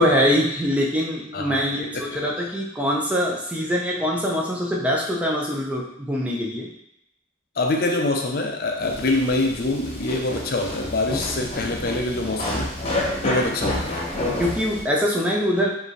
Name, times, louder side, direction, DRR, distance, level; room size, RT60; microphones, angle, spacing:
voice 1, 0.0-6.7 14.4-15.7, equal, 5° right, -3 dB, 0.5 m, -23 dB
voice 2, 1.3-2.1 7.6-12.8 13.2-14.1, left 2 dB, 50° left, 2 dB, 0.5 m, -25 dB
sound 1, 8.8-14.8, left 1 dB, 30° left, 0.9 m, -29 dB
4.9 x 2.6 x 3.1 m, 0.82 s
head